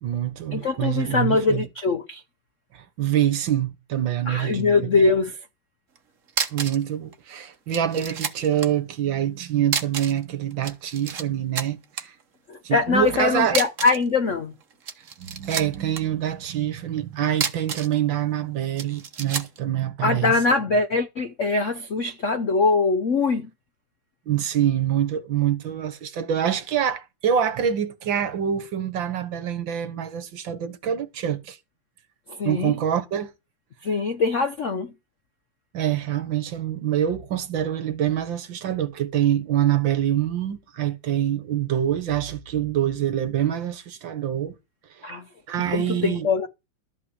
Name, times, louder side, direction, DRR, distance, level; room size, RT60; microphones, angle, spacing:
voice 1, 0.0-1.7 2.7-4.6 6.5-12.2 12.6-13.6 15.2-20.3 24.3-31.6 32.4-33.3 35.7-44.6 44.9-45.1 45.5-46.3, right 10 dB, 65° right, 1.9 m, -25 dB
voice 2, 0.5-2.2 4.3-5.4 12.5-14.5 20.0-23.5 32.3-32.7 33.8-34.9 45.0-45.2 45.7-46.5, left 4 dB, 60° left, 0.8 m, -22 dB
sound 1, 5.9-6.0 6.3-6.9 7.1-7.2 7.7-8.7 9.6-10.2 10.5-11.2 11.5-12.0 13.5-14.1 14.7-16.0 17.3-18.0 18.8-19.6, right 6 dB, 45° right, 1.3 m, -29 dB
13.0 x 5.6 x 8.1 m
omnidirectional pair, 2.4 m